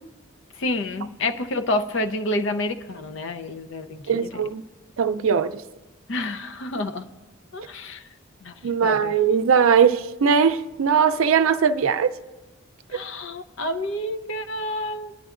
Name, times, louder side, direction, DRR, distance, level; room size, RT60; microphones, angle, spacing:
voice 1, 0.6-4.4 6.1-7.1 7.5-8.1 8.4-8.5 8.8-9.2 12.9-15.1, left 1 dB, 60° left, 0.5 m, -29 dB
voice 2, 4.1-4.6 5.0-5.6 8.6-12.1, right 7 dB, 75° right, 0.4 m, -20 dB
21.5 x 10.0 x 2.5 m
head